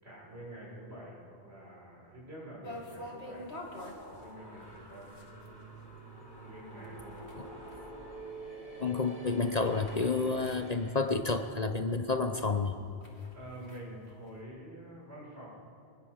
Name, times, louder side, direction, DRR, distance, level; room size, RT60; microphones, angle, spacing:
voice 1, 0.0-3.5 4.2-5.2 6.4-7.3 13.3-15.5, right 1 dB, 70° right, -5 dB, 6.8 m, -47 dB
sound 1, 2.6-11.8 12.1-12.2 12.6-14.4, left 1 dB, 75° left, 3.0 m, -48 dB
sound 2, 3.2-11.4, right 2 dB, 20° left, 3.8 m, -48 dB
voice 2, 8.8-12.8, left 4 dB, 40° left, 7 dB, 1.0 m, -30 dB
23.5 x 20.5 x 6.5 m, 2.5 s
omnidirectional pair, 1.1 m